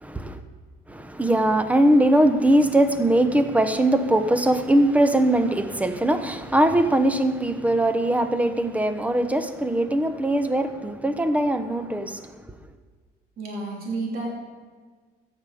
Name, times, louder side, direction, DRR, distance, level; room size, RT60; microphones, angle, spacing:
voice 1, 0.0-0.4 0.9-12.2, right 1 dB, 10° right, 0.9 m, -21 dB
voice 2, 13.4-14.3, right 3 dB, 60° right, 3.2 m, -30 dB
13.5 x 9.4 x 5.0 m
cardioid pair, 110°, 17 cm